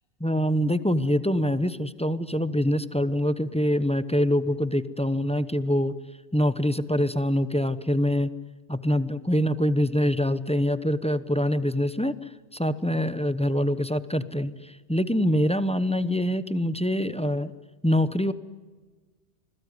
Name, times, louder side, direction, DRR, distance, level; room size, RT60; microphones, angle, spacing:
voice 1, 0.2-5.9 6.3-8.3 8.7-17.5 17.8-18.3, equal, 5° left, 14 dB, 0.7 m, -25 dB
26.5 x 21.5 x 9.7 m, 1.4 s
omnidirectional pair, 1.2 m